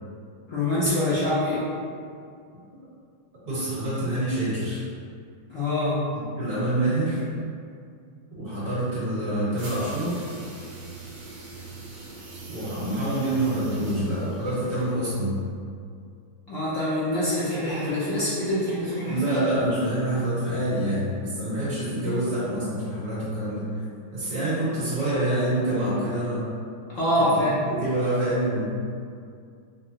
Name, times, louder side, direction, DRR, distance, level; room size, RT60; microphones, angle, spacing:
voice 1, 0.5-1.7 5.5-6.0 16.5-19.2 26.9-27.6, left 1 dB, 70° left, -10 dB, 0.7 m, -25 dB
voice 2, 3.4-4.8 6.4-7.2 8.3-10.3 12.4-15.4 19.0-23.8 24.1-26.5 27.2-27.3 27.6-28.8, right 1 dB, 50° right, -10 dB, 2.1 m, -26 dB
sound 1, 9.6-15.2, right 3 dB, 75° right, 1.7 m, -41 dB
5.7 x 2.1 x 2.8 m, 2.3 s
omnidirectional pair, 2.2 m